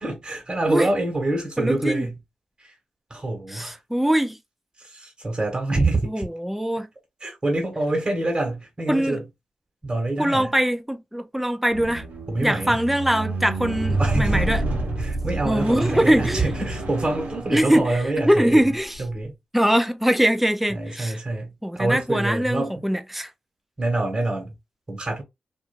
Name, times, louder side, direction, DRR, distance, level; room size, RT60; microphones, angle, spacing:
voice 1, 0.0-2.2 2.6-2.7 3.1-3.8 4.8-6.3 7.2-9.3 9.8-10.5 12.3-12.8 14.0-14.5 15.0-18.7 19.0-19.4 20.7-22.8 23.8-24.5 24.9-25.2, right 2 dB, 30° right, 1.5 m, -26 dB
voice 2, 1.6-2.1 3.5-4.4 6.1-6.9 8.9-9.2 10.2-12.1 12.4-14.6 15.4-16.5 17.5-17.9 18.2-19.0 19.5-21.2 21.6-23.3, equal, 5° right, 0.6 m, -22 dB
Squeak, 11.7-18.1 18.8-19.0, right 2 dB, 80° right, 0.8 m, -28 dB
2.6 x 2.6 x 2.5 m
cardioid pair, 50°, 3 cm